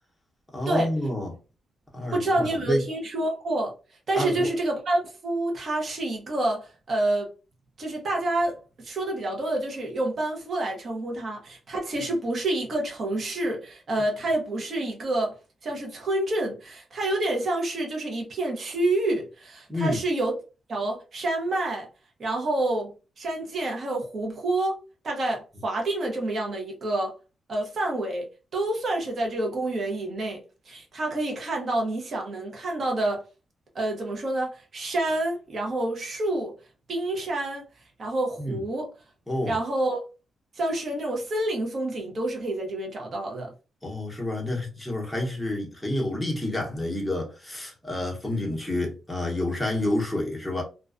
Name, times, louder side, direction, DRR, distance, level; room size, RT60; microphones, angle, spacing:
voice 1, 0.5-1.3 1.9-2.8 4.2-4.5 19.7-20.0 38.4-38.6 39.3-39.6 43.8-50.6, left 1 dB, 5° left, 0.8 m, -29 dB
voice 2, 2.1-3.7 4.1-7.3 7.8-8.6 8.8-15.3 15.6-20.3 20.7-21.9 22.2-24.8 25.0-27.1 27.5-33.2 33.7-36.5 36.9-37.6 38.0-38.9 39.5-40.0 40.5-43.5, right 2 dB, 45° right, 0.7 m, -28 dB
2.3 x 2.2 x 2.4 m
wide cardioid pair, 140°, 0 cm